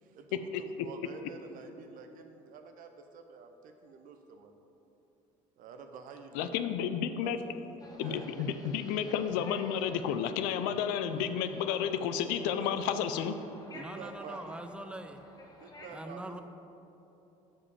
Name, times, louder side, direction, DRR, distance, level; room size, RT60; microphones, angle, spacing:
voice 1, 0.0-4.5 5.6-6.6 7.2-7.4 8.0-8.5 12.6-12.8 13.7-14.4 15.6-16.4, right 5 dB, 65° right, 6 dB, 0.7 m, -48 dB
voice 2, 6.3-7.4 8.0-13.3, left 8 dB, 80° left, 10 dB, 0.4 m, -31 dB
sound 1, 7.8-15.9, left 2 dB, 25° left, 1.1 m, -53 dB
voice 3, 13.7-15.2 15.9-16.4, right 1 dB, 5° right, 8 dB, 0.5 m, -43 dB
7.3 x 4.9 x 4.9 m, 3.0 s
supercardioid pair, 75°, 15 cm